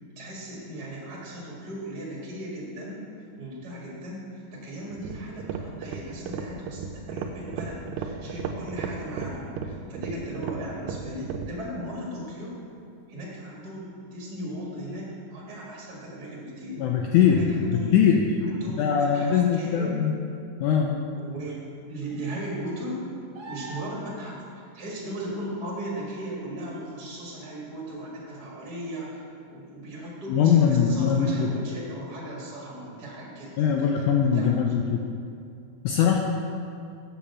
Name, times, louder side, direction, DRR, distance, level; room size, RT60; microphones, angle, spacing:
voice 1, 0.0-12.6 13.1-18.0 18.4-20.1 21.2-21.6 21.9-23.0 23.5-24.4 24.7-29.2 29.5-34.7, right 1 dB, 35° right, -5 dB, 2.1 m, -37 dB
sound 1, 4.9-11.6, right 6 dB, 85° right, 2.3 m, -34 dB
voice 2, 16.8-18.3 18.8-20.2 20.6-20.9 30.3-31.5 33.6-35.0 35.8-36.2, left 7 dB, 80° left, 1 dB, 1.8 m, -21 dB
sound 2, 23.3-24.3 27.8-27.9, right 2 dB, 70° right, 1.1 m, -41 dB
7.5 x 7.0 x 7.3 m, 2.4 s
omnidirectional pair, 4.0 m